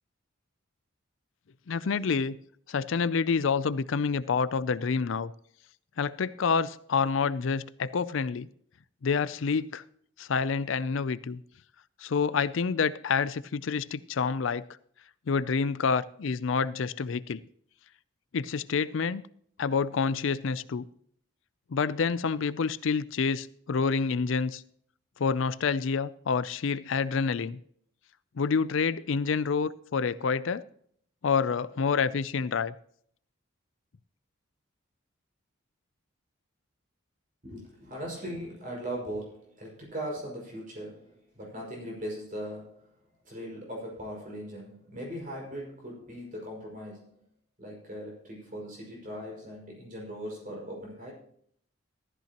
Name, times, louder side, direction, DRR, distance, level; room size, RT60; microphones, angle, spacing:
voice 1, 1.7-2.3 2.7-5.3 6.0-8.5 9.0-9.8 10.2-11.4 12.0-14.6 15.3-17.4 18.3-19.2 19.6-20.9 21.7-24.6 25.2-27.6 28.4-30.6 31.2-32.7, left 5 dB, 65° left, 0.4 m, -28 dB
voice 2, 37.4-42.9 43.2-47.2 47.6-51.1, equal, 40° right, 5.5 m, -39 dB
15.0 x 13.5 x 3.0 m
head